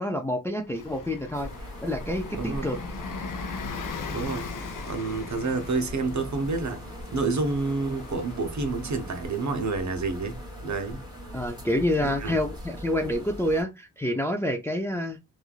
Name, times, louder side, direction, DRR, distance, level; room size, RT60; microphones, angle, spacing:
voice 1, 0.0-1.5 1.8-2.8 11.3-15.2, left 1 dB, 10° left, 0.4 m, -28 dB
Bus, 0.7-13.0, left 4 dB, 70° left, 0.6 m, -40 dB
sound 1, 1.3-13.6, equal, 15° right, 1.4 m, -41 dB
voice 2, 2.4-2.7 4.1-4.5 4.9-6.8 7.1-11.0 12.0-12.4, right 3 dB, 55° right, 0.7 m, -29 dB
3.1 x 2.4 x 2.3 m
wide cardioid pair, 95°, 34 cm